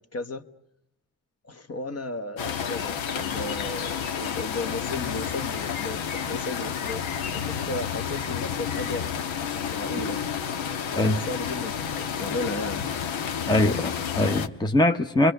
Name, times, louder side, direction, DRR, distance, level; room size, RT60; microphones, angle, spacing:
voice 1, 0.1-0.4 1.4-7.0 7.3-9.2 9.5-10.2 10.9-12.9, left 2 dB, 30° left, 1.3 m, -35 dB
sound 1, 2.4-14.5, left 8 dB, 80° left, 1.4 m, -30 dB
voice 2, 13.5-15.3, left 1 dB, 10° left, 0.9 m, -22 dB
28.5 x 23.0 x 6.7 m
cardioid pair, 80°, 46 cm